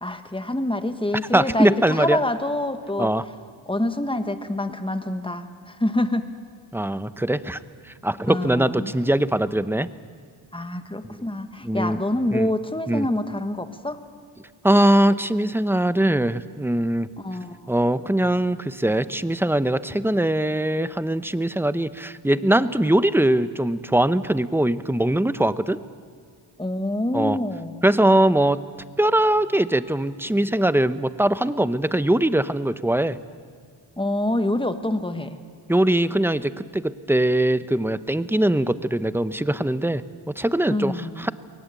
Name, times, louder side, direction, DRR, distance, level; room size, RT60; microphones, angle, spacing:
voice 1, 0.0-3.1 3.7-6.3 8.3-8.9 10.5-14.0 17.2-17.7 26.6-27.8 34.0-35.4 40.7-41.3, left 1 dB, 10° left, 9 dB, 1.4 m, -26 dB
voice 2, 1.3-2.2 3.0-3.2 6.7-7.6 8.0-9.9 11.6-12.0 12.3-12.5 12.9-13.1 14.6-17.1 17.7-25.8 27.1-27.4 27.8-28.6 29.0-33.2 35.7-41.3, right 1 dB, 5° right, 14 dB, 0.7 m, -21 dB
22.0 x 18.0 x 8.3 m, 2.1 s
cardioid pair, 50°, 50 cm